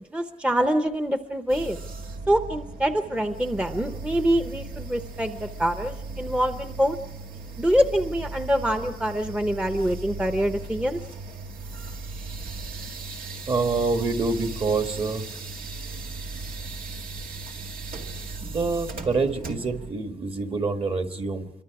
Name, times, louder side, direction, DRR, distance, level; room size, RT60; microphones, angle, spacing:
voice 1, 0.1-1.8 2.3-7.0 7.6-11.0, equal, 10° right, 7 dB, 0.7 m, -25 dB
sound 1, 1.5-19.9, right 3 dB, 85° right, 2.0 m, -37 dB
voice 2, 13.5-15.2 18.4-21.5, right 4 dB, 40° right, 6 dB, 1.5 m, -26 dB
28.0 x 23.5 x 4.8 m, 0.80 s
wide cardioid pair, 165°, 14 cm